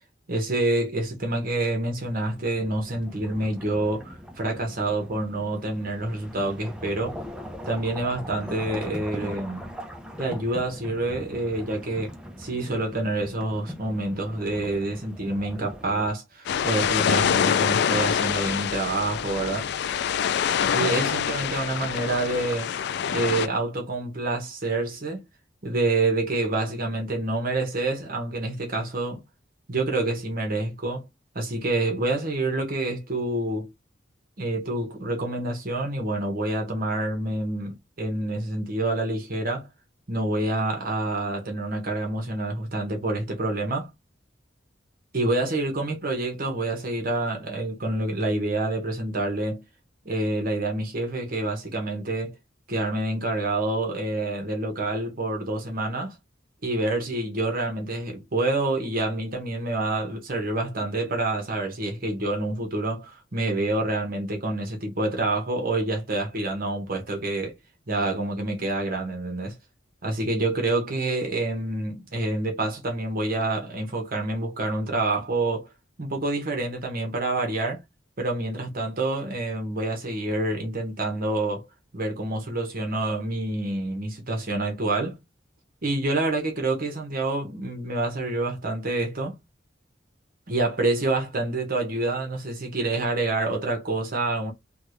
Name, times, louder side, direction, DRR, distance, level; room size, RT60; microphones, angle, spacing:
voice 1, 0.3-7.2 7.7-9.6 10.2-19.7 20.7-22.7 23.1-25.2 25.6-29.2 29.7-31.0 31.3-33.7 34.4-39.7 40.1-43.9 45.1-49.6 50.0-52.3 52.7-56.2 56.6-67.5 67.9-69.6 70.0-75.7 76.0-77.8 78.2-81.7 81.9-85.2 85.8-89.4 90.5-94.5, right 2 dB, 50° right, 1.1 m, -27 dB
sound 1, 1.9-16.1, equal, 5° right, 0.5 m, -40 dB
sound 2, 16.5-23.5, left 8 dB, 60° left, 0.3 m, -25 dB
3.6 x 2.3 x 3.1 m
head